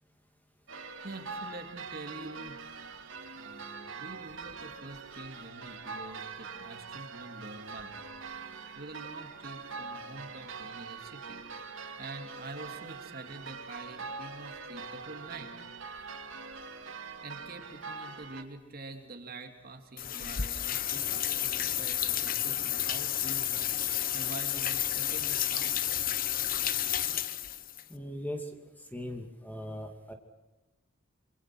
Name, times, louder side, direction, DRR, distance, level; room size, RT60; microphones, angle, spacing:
sound 1, 0.7-18.4, right 4 dB, 75° right, 2.6 m, -43 dB
voice 1, 1.0-2.8 3.3-8.0 8.7-11.5 12.0-15.5 17.2-23.8 24.1-25.8, right 2 dB, 50° right, 5 dB, 3.1 m, -46 dB
sound 2, 20.0-27.8, left 11 dB, 45° left, 1.0 m, -31 dB
voice 2, 27.9-28.5 28.9-30.1, left 1 dB, 10° left, 4 dB, 2.7 m, -39 dB
27.5 x 24.0 x 6.3 m, 1.1 s
head